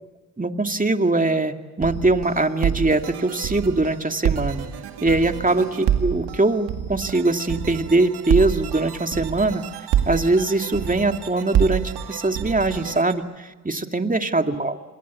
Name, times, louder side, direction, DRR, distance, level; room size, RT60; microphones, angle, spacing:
voice 1, 0.4-4.7 5.0-9.6 10.1-14.8, right 2 dB, 20° right, 6 dB, 2.5 m, -22 dB
sound 1, 1.8-13.1, right 9 dB, 85° right, 2.0 m, -27 dB
27.0 x 22.0 x 8.5 m, 1.2 s
supercardioid pair, 45°, 38 cm